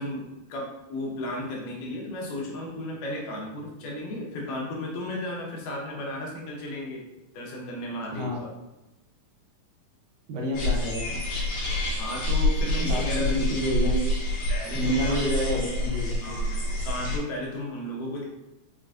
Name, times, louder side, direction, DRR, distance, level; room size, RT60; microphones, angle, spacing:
voice 1, 0.0-7.0 7.3-8.5 12.0-13.5 14.5-15.2 16.2-18.2, left 1 dB, 85° left, -1 dB, 2.5 m, -34 dB
voice 2, 10.3-11.2 12.9-14.1 14.7-16.4, equal, 75° right, -3 dB, 1.8 m, -29 dB
sound 1, 10.5-17.2, left 1 dB, 55° left, 2.4 m, -27 dB
6.2 x 2.5 x 2.4 m, 1.0 s
omnidirectional pair, 3.7 m